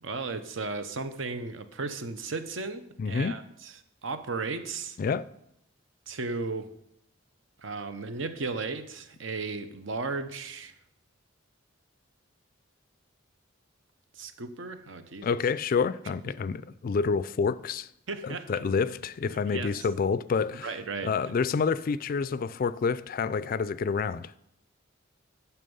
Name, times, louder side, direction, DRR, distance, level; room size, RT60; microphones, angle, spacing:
voice 1, 0.0-5.0 6.1-6.7 7.6-10.7 14.1-15.3 18.1-18.8 19.3-19.9 20.6-21.4, right 3 dB, 75° right, 0.8 m, -35 dB
voice 2, 3.0-3.4 5.0-5.2 15.2-17.9 18.2-20.7 21.0-24.3, left 5 dB, 45° left, 0.3 m, -28 dB
11.0 x 5.8 x 5.5 m
head